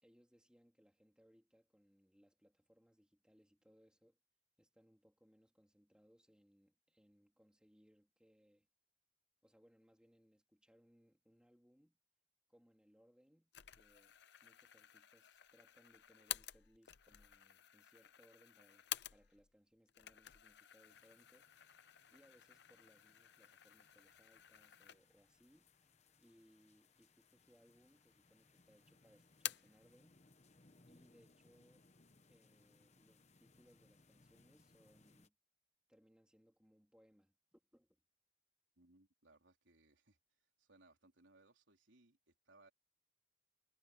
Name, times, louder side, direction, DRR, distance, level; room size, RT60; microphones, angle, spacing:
voice 1, 0.0-4.2 4.6-8.7 9.4-12.0 12.5-21.8 22.1-25.7 26.2-30.2 30.9-31.9 32.3-35.3 35.9-38.0, equal, 5° right, 2.9 m, -70 dB
sound 1, 13.5-19.5 19.9-25.3 25.7-25.8 26.7-27.3 27.7-28.4 28.7-29.8, left 13 dB, 60° left, 0.7 m, -51 dB
sound 2, 20.8-35.3, left 3 dB, 35° left, 1.1 m, -70 dB
voice 2, 38.8-40.2 40.6-42.7, right 2 dB, 80° right, 3.7 m, -68 dB
head